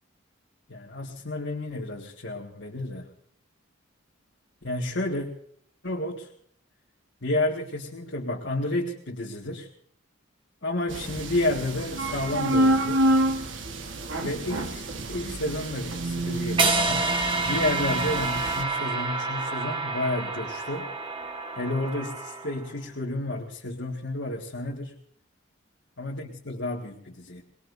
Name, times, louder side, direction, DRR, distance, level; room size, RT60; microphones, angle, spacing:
voice 1, 0.7-3.1 4.6-5.3 5.8-6.3 7.2-9.7 10.6-13.0 14.2-17.1 17.4-20.9 21.5-24.9 26.0-27.4, left 1 dB, 60° left, -3 dB, 1.9 m, -31 dB
sound 1, 10.9-18.6, right 1 dB, 65° right, 1.5 m, -28 dB
sound 2, 16.6-22.7, right 3 dB, 25° right, 1.5 m, -28 dB
24.0 x 20.5 x 2.7 m, 0.64 s
head